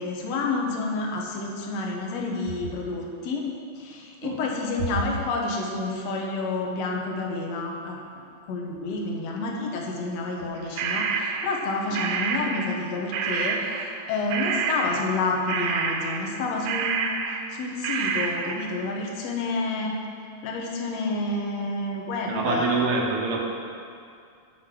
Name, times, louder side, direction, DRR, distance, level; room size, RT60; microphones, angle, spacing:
voice 1, 0.0-3.4 3.8-17.2 17.5-20.0 20.4-22.7, left 3 dB, 65° left, 0 dB, 2.2 m, -29 dB
sound 1, 10.8-12.9 13.1-18.8, right 5 dB, 85° right, 2.1 m, -28 dB
voice 2, 22.3-23.5, right 3 dB, 60° right, -1 dB, 1.5 m, -25 dB
13.0 x 4.6 x 6.1 m, 2.3 s
omnidirectional pair, 3.4 m